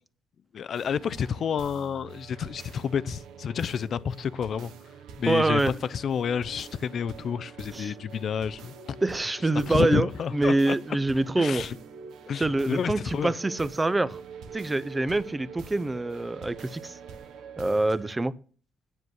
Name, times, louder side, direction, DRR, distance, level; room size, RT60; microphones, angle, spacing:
voice 1, 0.5-4.7 5.2-5.6 5.9-8.7 9.7-10.8 11.4-11.8 12.2-13.3, left 7 dB, 60° left, 0.4 m, -30 dB
sound 1, 0.7-18.1, right 6 dB, 85° right, 1.1 m, -45 dB
voice 2, 5.3-5.7 7.7-7.9 9.0-11.7 12.4-14.2 14.5-17.0 17.6-18.3, right 2 dB, 15° right, 0.5 m, -25 dB
7.9 x 7.4 x 7.9 m
cardioid pair, 90°, 0 cm